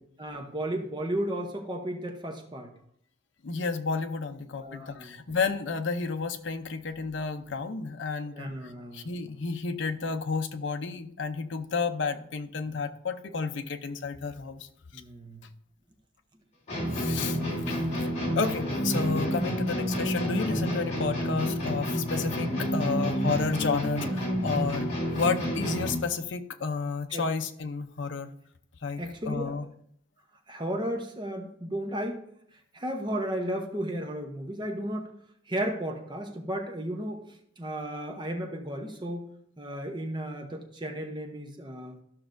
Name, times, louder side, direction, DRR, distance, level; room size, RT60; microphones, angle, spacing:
voice 1, 0.2-2.7 4.5-5.2 8.3-9.1 12.7-12.8 14.9-15.5 27.1-27.3 29.0-29.6 30.5-32.3 32.7-35.1 35.5-37.2 37.6-39.3 39.6-42.0, right 1 dB, 25° right, 3 dB, 0.8 m, -34 dB
voice 2, 3.4-8.5 8.9-14.7 16.9-18.1 18.4-24.9 25.2-28.3 28.8-29.7, left 4 dB, 65° left, 7 dB, 0.6 m, -31 dB
sound 1, 16.7-26.1, equal, 35° left, 3.2 m, -29 dB
13.0 x 6.0 x 2.6 m, 0.67 s
head